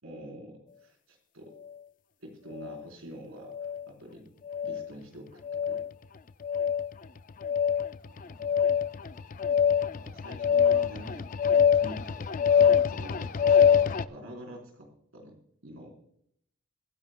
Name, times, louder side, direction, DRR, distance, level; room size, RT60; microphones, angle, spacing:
voice 1, 0.0-1.5 2.2-3.5 3.9-4.3 4.6-5.4 5.7-5.8 8.2-8.9 9.4-14.9 15.1-15.4 15.6-15.9, right 1 dB, 90° right, 1 dB, 4.0 m, -47 dB
sound 1, 2.6-2.8 3.5-3.8 4.5-4.9 5.4-5.9 6.4-6.9 7.4-14.0, left 7 dB, 40° left, 0.4 m, -24 dB
23.0 x 10.5 x 2.2 m, 0.72 s
head